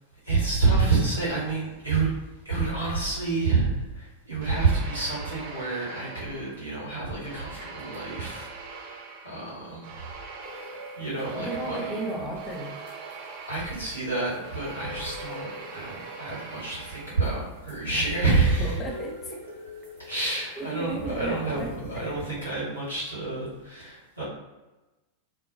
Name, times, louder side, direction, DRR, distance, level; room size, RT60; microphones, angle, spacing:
voice 1, 0.2-2.1 2.4-8.5 9.2-9.9 11.0-11.8 13.5-18.8 20.0-24.2, right 3 dB, 85° right, -8 dB, 1.4 m, -28 dB
sound 1, 4.4-6.8 7.2-17.6, right 4 dB, 50° right, 0.4 m, -42 dB
sound 2, 10.4-22.3, right 2 dB, 65° right, 1.0 m, -43 dB
voice 2, 11.4-12.7 17.9-18.0 18.6-19.3 20.2-21.7, right 1 dB, 20° left, 0 dB, 0.5 m, -35 dB
2.5 x 2.2 x 2.7 m, 1.1 s
figure-of-eight pair, 90°, 0 cm